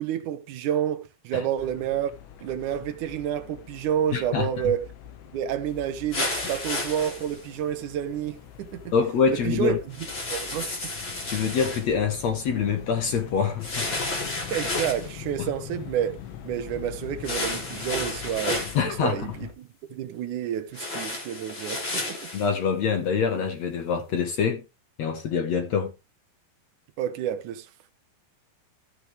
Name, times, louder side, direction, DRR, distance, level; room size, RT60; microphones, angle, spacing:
voice 1, 0.0-2.1 2.4-4.9 5.3-8.9 9.3-10.7 14.5-16.1 16.4-22.3 27.0-27.7, right 10 dB, 70° right, 2.0 m, -29 dB
sound 1, 1.6-19.5, left 10 dB, 85° left, 3.7 m, -43 dB
voice 2, 4.1-4.5 8.9-9.8 11.3-13.9 18.7-19.3 22.3-24.6 25.0-25.9, left 6 dB, 70° left, 1.7 m, -25 dB
sound 2, 6.1-7.5 9.9-11.9 13.6-15.1 17.2-18.8 20.7-22.5, left 2 dB, 30° left, 3.5 m, -31 dB
15.5 x 6.7 x 3.4 m
omnidirectional pair, 5.0 m